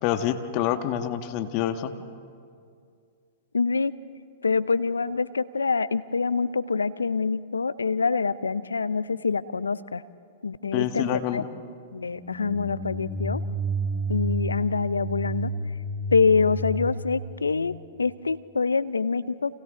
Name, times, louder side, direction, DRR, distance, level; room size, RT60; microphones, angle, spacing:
voice 1, 0.0-1.9 10.7-11.4, left 11 dB, 45° left, 8 dB, 1.4 m, -27 dB
voice 2, 3.5-3.9 4.4-10.0 10.4-11.4 11.9-13.6 14.1-15.5 16.1-19.6, left 4 dB, 90° left, 16 dB, 0.6 m, -25 dB
sound 1, 12.1-18.1, right 2 dB, 5° right, 4.2 m, -31 dB
30.0 x 28.5 x 3.8 m, 2.3 s
hypercardioid pair, 110°, 0 cm